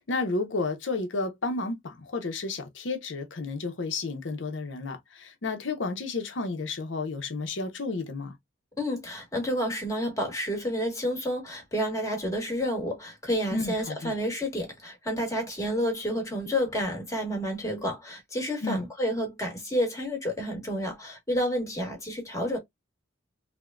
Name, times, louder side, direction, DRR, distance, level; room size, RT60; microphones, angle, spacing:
voice 1, 0.0-8.3 13.5-14.1 18.6-18.8, left 3 dB, 70° left, 0.7 m, -32 dB
voice 2, 8.8-22.6, equal, 15° left, 1.2 m, -30 dB
3.4 x 2.1 x 2.2 m
head